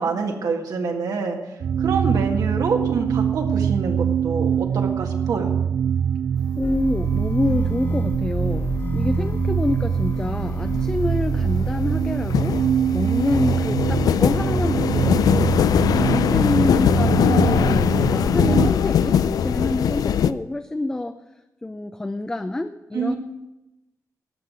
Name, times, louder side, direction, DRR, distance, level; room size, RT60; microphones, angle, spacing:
voice 1, 0.0-1.4 1.8-5.5 22.9-23.2, right 4 dB, 75° right, 3 dB, 1.8 m, -26 dB
sound 1, 1.6-18.7, right 8 dB, 60° right, 0.3 m, -24 dB
sound 2, 6.4-6.8 7.2-20.3, left 9 dB, 90° left, 0.4 m, -22 dB
sound 3, 6.6-12.8, left 1 dB, 35° left, 1.3 m, -31 dB
voice 2, 6.6-12.7 12.9-15.5 15.9-21.2 21.6-23.1, left 2 dB, 10° left, 8 dB, 0.5 m, -27 dB
13.5 x 5.9 x 9.4 m, 0.97 s
wide cardioid pair, 140°, 6 cm